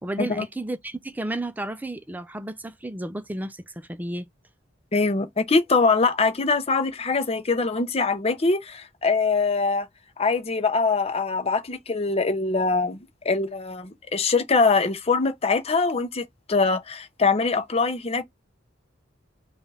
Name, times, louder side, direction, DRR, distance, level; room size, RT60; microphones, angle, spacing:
voice 1, 0.0-4.3, right 1 dB, 10° right, 0.4 m, -32 dB
voice 2, 4.9-9.9 10.2-13.0 13.2-18.2, left 4 dB, 30° left, 0.7 m, -23 dB
3.6 x 2.3 x 4.0 m
head